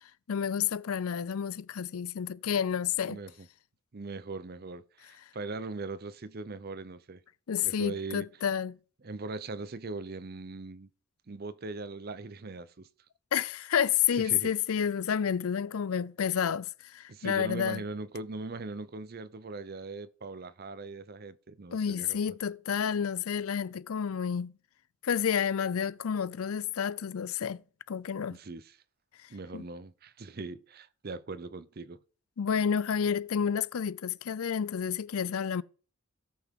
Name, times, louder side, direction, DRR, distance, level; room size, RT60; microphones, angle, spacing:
voice 1, 0.3-3.2 7.5-8.8 13.3-17.8 21.7-24.5 25.0-27.6 27.9-28.4 29.5-29.6 32.4-35.6, left 8 dB, 80° left, 0.5 m, -30 dB
voice 2, 3.0-3.5 3.9-7.2 7.6-8.3 9.0-10.9 11.3-12.9 14.2-14.5 17.1-22.2 28.3-28.7 29.3-32.0, right 3 dB, 45° right, 0.6 m, -40 dB
17.0 x 5.9 x 3.6 m
head